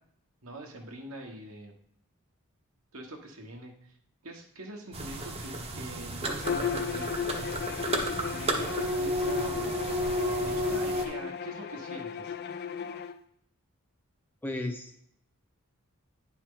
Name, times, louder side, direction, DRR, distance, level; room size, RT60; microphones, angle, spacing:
voice 1, 0.4-1.7 2.9-4.0 4.2-7.2 7.7-9.8 10.4-12.3, right 2 dB, 70° right, 2 dB, 1.3 m, -44 dB
sound 1, 4.9-11.1, equal, 30° right, 0.9 m, -32 dB
Bowed string instrument, 6.4-13.1, left 7 dB, 50° left, 0.4 m, -35 dB
voice 2, 14.4-15.0, left 1 dB, 10° left, 3 dB, 0.7 m, -34 dB
9.6 x 4.6 x 3.8 m, 0.69 s
head